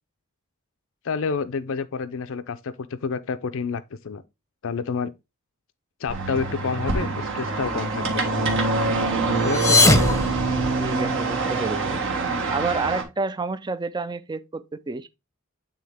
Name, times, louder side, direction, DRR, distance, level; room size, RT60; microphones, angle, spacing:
voice 1, 1.0-4.2 4.6-5.1 6.0-8.2 9.3-9.8, left 5 dB, 60° left, 0.5 m, -29 dB
sound 1, 6.1-13.0, right 3 dB, 60° right, 1.6 m, -25 dB
sound 2, 9.4-11.3, left 3 dB, 15° left, 0.8 m, -21 dB
voice 2, 10.8-12.0 12.5-15.1, right 3 dB, 20° right, 0.4 m, -29 dB
8.5 x 3.7 x 3.4 m
head